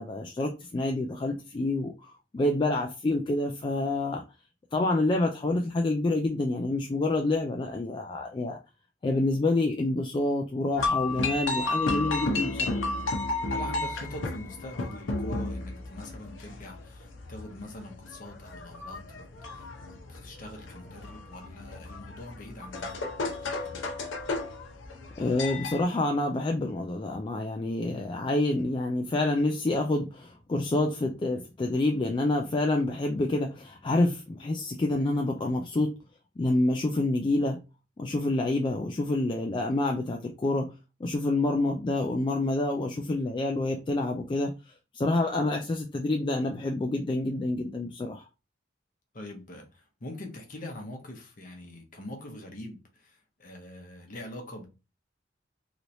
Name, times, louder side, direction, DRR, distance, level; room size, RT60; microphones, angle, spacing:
voice 1, 0.0-4.2 4.7-8.6 9.0-12.8 25.2-36.0 36.4-37.6 38.0-40.7 41.0-48.2, left 2 dB, 25° left, 0.3 m, -28 dB
sound 1, 10.8-25.8, left 2 dB, 85° left, 0.7 m, -33 dB
voice 2, 13.5-23.9 49.1-54.7, left 1 dB, 45° left, 0.8 m, -43 dB
3.1 x 2.9 x 2.6 m
head